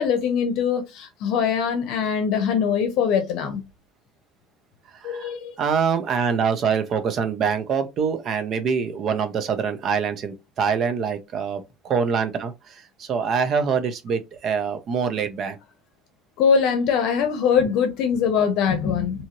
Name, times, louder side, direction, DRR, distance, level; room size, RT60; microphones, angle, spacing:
voice 1, 0.0-3.6 5.0-5.5 16.4-19.3, left 7 dB, 60° left, 0.7 m, -22 dB
voice 2, 4.9-5.3 5.6-15.6, right 6 dB, 40° right, 0.6 m, -25 dB
2.7 x 2.5 x 2.9 m
cardioid pair, 160°, 0 cm